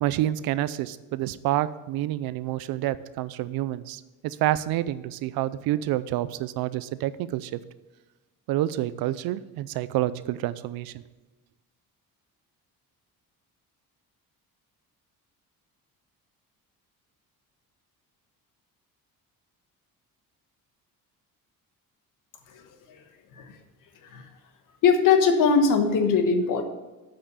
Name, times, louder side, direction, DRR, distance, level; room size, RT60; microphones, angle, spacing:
voice 1, 0.0-7.6 8.5-11.0, right 14 dB, 85° right, 16 dB, 0.6 m, -28 dB
voice 2, 24.8-26.6, left 5 dB, 65° left, 7 dB, 1.2 m, -21 dB
8.6 x 5.8 x 6.7 m, 1.2 s
cardioid pair, 175°, 35 cm